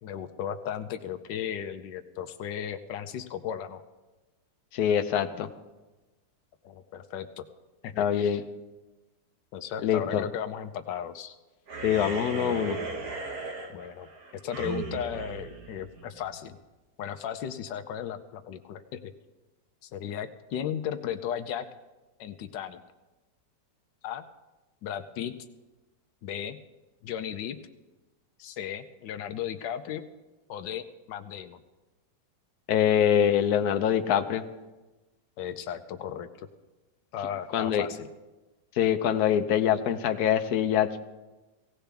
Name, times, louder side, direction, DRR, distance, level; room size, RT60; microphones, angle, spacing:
voice 1, 0.0-3.8 6.6-7.4 7.8-8.4 9.5-11.4 13.7-14.1 14.4-16.6 17.0-19.1 19.8-21.7 22.2-22.8 24.0-24.2 24.8-25.3 26.2-26.6 27.0-27.6 28.4-30.0 30.5-31.6 35.4-36.5 37.1-38.1, left 9 dB, 85° left, 8 dB, 1.3 m, -35 dB
voice 2, 4.7-5.5 8.0-8.4 9.8-10.2 11.8-12.8 32.7-34.4 37.5-37.9 38.8-41.0, left 9 dB, 65° left, 8 dB, 1.2 m, -24 dB
sound 1, 11.7-16.4, right 3 dB, 60° right, 1.9 m, -37 dB
17.5 x 16.5 x 3.4 m, 1.1 s
omnidirectional pair, 1.9 m